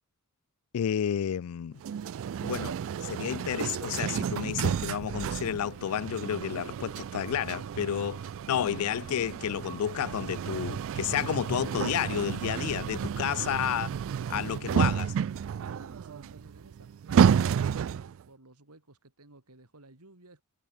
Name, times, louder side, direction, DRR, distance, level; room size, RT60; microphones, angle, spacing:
voice 1, 0.7-1.8 2.4-13.9 14.3-15.2, left 9 dB, 75° left, 0.4 m, -31 dB
sound 1, 1.8-18.2, right 8 dB, 60° right, 0.3 m, -31 dB
voice 2, 15.4-20.4, right 2 dB, 85° right, 3.0 m, -54 dB
head